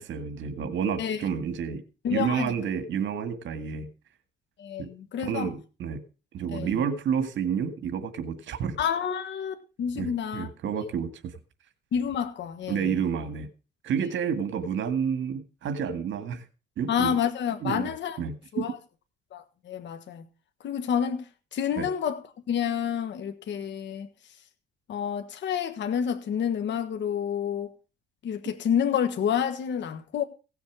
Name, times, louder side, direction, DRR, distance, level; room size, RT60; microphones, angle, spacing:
voice 1, 0.0-1.8 2.1-3.9 4.8-4.9 5.2-6.0 6.3-8.8 10.0-11.1 12.7-13.5 13.8-16.4 16.8-17.2 17.6-17.9 18.2-18.6 21.8-21.9, right 7 dB, 70° right, 1.9 m, -30 dB
voice 2, 2.0-2.5 4.6-5.5 6.5-6.7 8.8-10.5 11.9-12.9 16.9-18.2 18.5-18.8 19.3-20.2 20.6-21.2 21.5-24.1 24.9-27.7 28.2-30.2, left 8 dB, 65° left, 1.4 m, -29 dB
17.0 x 7.1 x 6.2 m
cardioid pair, 90°, 20 cm